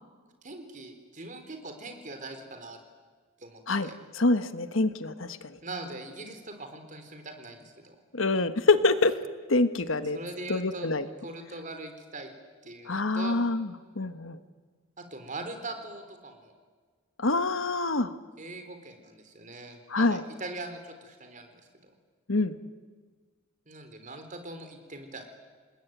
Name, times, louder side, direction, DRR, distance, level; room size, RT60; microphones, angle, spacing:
voice 1, 0.4-2.8 3.4-4.0 5.6-8.0 10.1-10.9 11.2-12.3 12.6-13.4 15.0-16.5 18.4-21.5 21.8-21.9 23.7-25.3, right 2 dB, 40° right, 6 dB, 3.8 m, -41 dB
voice 2, 4.1-5.6 8.1-9.1 9.5-10.2 10.5-11.0 12.9-13.7 13.9-14.4 17.2-18.1 19.9-20.2 22.3-22.5, left 3 dB, 75° left, 11 dB, 1.3 m, -25 dB
28.0 x 20.5 x 9.2 m, 1.5 s
head